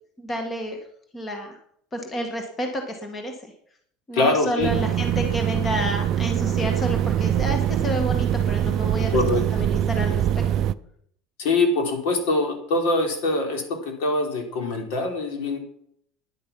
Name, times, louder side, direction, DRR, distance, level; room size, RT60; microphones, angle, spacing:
voice 1, 0.2-0.8 1.1-1.6 1.9-3.3 4.1-10.2, equal, 15° left, 4 dB, 1.5 m, -30 dB
voice 2, 4.1-4.7 9.1-9.4 11.4-15.6, left 2 dB, 70° left, 3 dB, 3.7 m, -23 dB
sound 1, 4.6-10.7, right 10 dB, 35° right, 0.4 m, -23 dB
12.0 x 10.5 x 6.0 m, 0.68 s
cardioid pair, 170°, 0 cm